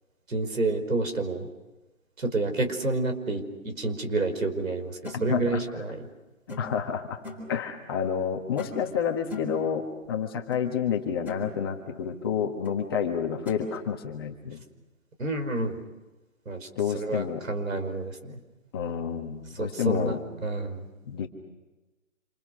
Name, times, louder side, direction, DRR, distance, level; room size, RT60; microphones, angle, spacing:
voice 1, 0.3-1.5 2.2-6.1 15.2-15.8 16.5-16.7 16.9-18.4 19.6-20.1 20.4-20.9, right 2 dB, 80° right, 7 dB, 5.2 m, -29 dB
sound 1, 5.0-5.2 6.5-6.8 7.2-7.5 8.6-8.9 9.3-9.6 10.5-10.6 11.0-11.5 12.6-12.8 13.5-13.6, left 2 dB, 5° right, 4.0 m, -38 dB
voice 2, 5.3-5.6 6.6-7.1 7.5-14.6 16.7-17.4 18.7-20.2 21.0-21.3, left 7 dB, 20° left, 2 dB, 1.5 m, -29 dB
27.5 x 27.5 x 6.5 m, 1.1 s
hypercardioid pair, 165°, 40 cm